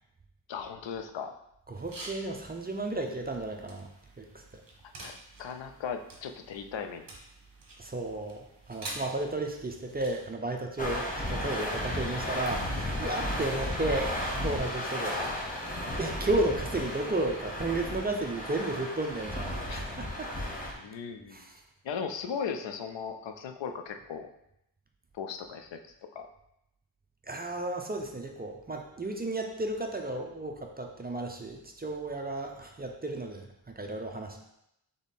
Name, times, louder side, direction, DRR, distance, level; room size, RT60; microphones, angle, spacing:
voice 1, 0.5-1.3 5.0-7.1 15.1-15.7 19.7-19.8 20.8-21.5 21.8-24.3 25.1-25.8 26.1-26.3, left 6 dB, 85° left, 7 dB, 0.5 m, -37 dB
voice 2, 1.7-3.9 4.2-4.6 7.8-15.2 16.0-20.3 21.3-21.6 27.2-34.4, right 2 dB, 25° right, 2 dB, 0.4 m, -33 dB
sound 1, 1.7-10.3, right 2 dB, 50° right, 1.0 m, -48 dB
sound 2, 10.8-20.7, left 1 dB, 20° left, 0.7 m, -34 dB
3.6 x 3.5 x 4.1 m, 0.81 s
wide cardioid pair, 160°, 43 cm